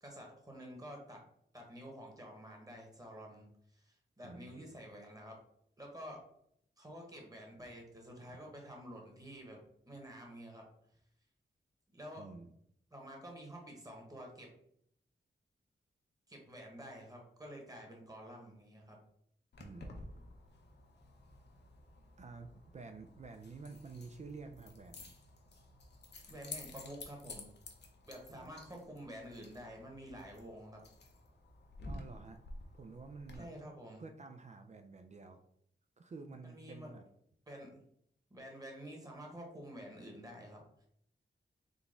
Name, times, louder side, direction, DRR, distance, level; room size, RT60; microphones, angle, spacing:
voice 1, 0.0-1.2 1.5-5.4 5.8-6.2 6.8-10.6 11.9-12.3 12.9-14.5 16.3-19.0 26.3-27.5 28.0-30.8 33.3-34.0 36.4-36.9 37.5-37.8 38.3-40.6, equal, 20° right, 0 dB, 1.3 m, -49 dB
voice 2, 4.2-4.6 12.2-12.5 19.6-20.1 22.2-25.1 28.3-28.5 31.8-32.4 32.7-33.5 34.0-35.4 36.0-37.0, right 4 dB, 35° right, 5 dB, 0.4 m, -50 dB
Keys jangling, 19.5-33.4, left 2 dB, 60° left, 0.7 m, -52 dB
3.8 x 2.3 x 3.7 m, 0.71 s
cardioid pair, 65°, 20 cm